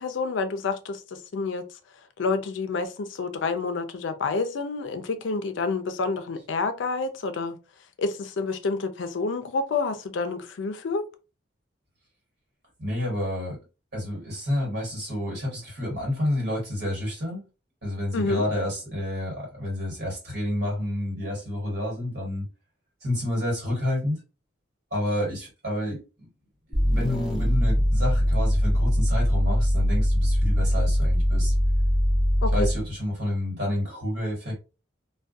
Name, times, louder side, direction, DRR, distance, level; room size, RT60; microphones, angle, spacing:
voice 1, 0.0-1.7 2.2-7.6 8.0-11.1 18.1-18.4 32.4-32.7, left 4 dB, 75° left, 0.4 m, -28 dB
voice 2, 12.8-13.6 13.9-17.4 17.8-22.5 23.0-24.2 24.9-26.3 26.7-31.5 32.5-34.6, left 1 dB, 60° right, 1.4 m, -29 dB
sound 1, 26.7-32.9, equal, ahead, 0.4 m, -22 dB
2.3 x 2.2 x 2.5 m
head